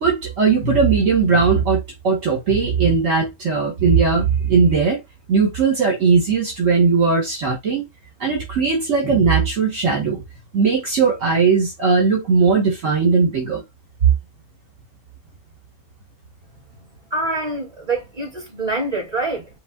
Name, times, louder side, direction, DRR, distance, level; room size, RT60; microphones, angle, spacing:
voice 1, 0.0-5.0 5.3-7.8 8.2-10.2 10.5-13.6, right 5 dB, 60° right, 1.6 m, -18 dB
voice 2, 17.1-19.5, right 2 dB, 25° right, 2.6 m, -25 dB
5.3 x 2.4 x 3.6 m
omnidirectional pair, 1.5 m